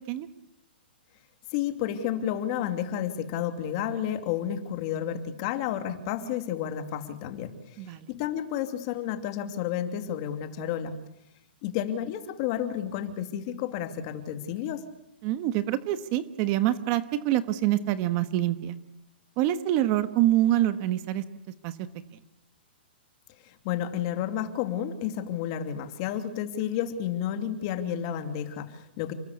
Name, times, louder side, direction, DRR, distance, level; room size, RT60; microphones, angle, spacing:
voice 1, 1.5-11.0 11.6-14.8 23.4-29.1, left 10 dB, 30° left, 8 dB, 2.7 m, -31 dB
voice 2, 15.2-18.8 19.4-21.2 21.6-21.8, right 13 dB, 25° right, 12 dB, 1.3 m, -25 dB
30.0 x 21.0 x 8.4 m, 0.79 s
hypercardioid pair, 170°, 6 cm